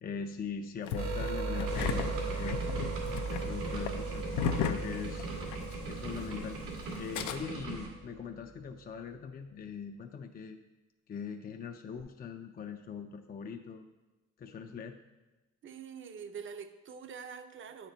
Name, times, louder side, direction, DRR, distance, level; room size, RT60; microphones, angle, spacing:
voice 1, 0.0-2.7 3.3-4.3 4.6-5.3 5.9-10.6 11.1-13.8 14.4-15.0, left 6 dB, 30° left, 5 dB, 0.4 m, -41 dB
Engine starting, 0.9-5.7 6.0-6.1 6.9-7.4, left 7 dB, 85° left, 0.5 m, -35 dB
sound 1, 1.0-8.7 12.0-12.1, right 3 dB, 65° right, 1.4 m, -38 dB
sound 2, 1.7-7.9, right 3 dB, 90° right, 2.1 m, -41 dB
voice 2, 15.6-17.9, right 6 dB, 40° right, 9 dB, 0.6 m, -45 dB
8.9 x 4.5 x 3.9 m, 1.1 s
cardioid pair, 90°, 30 cm